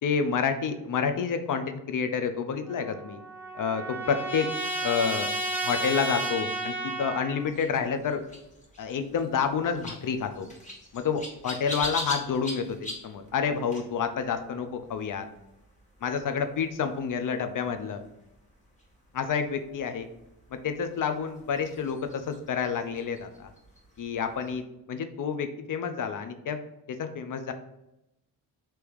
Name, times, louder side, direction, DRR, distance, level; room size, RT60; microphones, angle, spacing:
voice 1, 0.0-3.2 3.5-4.5 4.8-5.3 5.6-8.2 8.8-10.5 10.9-15.3 16.0-18.0 19.1-20.1 20.6-23.5 24.0-26.6 26.9-27.5, left 6 dB, 45° left, 8 dB, 0.7 m, -29 dB
Trumpet, 2.7-7.4, right 1 dB, 5° right, 0.9 m, -32 dB
sound 1, 7.4-24.6, left 1 dB, 15° left, 1.4 m, -44 dB
3.4 x 3.0 x 4.6 m, 0.90 s
hypercardioid pair, 50°, 46 cm